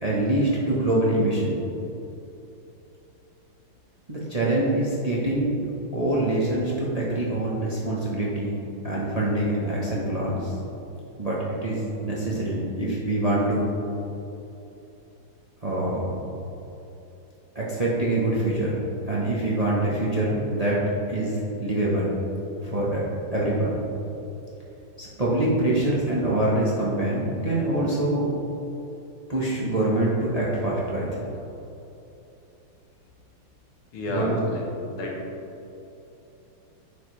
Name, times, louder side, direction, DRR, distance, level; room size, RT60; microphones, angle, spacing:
voice 1, 0.0-1.6 4.1-5.6 5.9-10.6 11.2-13.7 15.6-16.1 17.5-18.8 19.0-22.2 22.6-23.0 23.3-23.8 25.0-28.3 29.3-31.2 34.1-34.4, right 1 dB, 25° right, -5 dB, 0.8 m, -25 dB
voice 2, 33.9-34.6 34.9-35.4, left 1 dB, 85° left, -1 dB, 2.2 m, -30 dB
9.7 x 6.7 x 3.2 m, 2.9 s
omnidirectional pair, 2.3 m